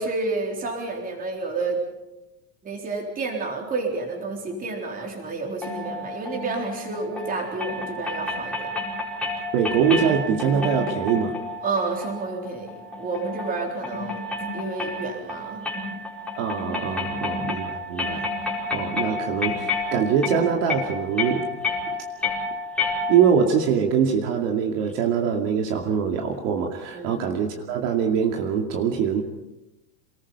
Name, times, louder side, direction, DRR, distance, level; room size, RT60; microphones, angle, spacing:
voice 1, 0.0-1.8 2.6-8.7 11.6-14.2 14.5-15.7 17.1-17.2 26.9-27.1, right 3 dB, 15° right, 2 dB, 3.8 m, -30 dB
sound 1, 5.6-23.5, left 2 dB, ahead, 4.8 m, -30 dB
voice 2, 9.5-11.4 16.4-21.5 23.1-29.2, right 7 dB, 50° right, 3 dB, 2.5 m, -23 dB
27.5 x 19.5 x 5.7 m, 0.97 s
supercardioid pair, 175°, 49 cm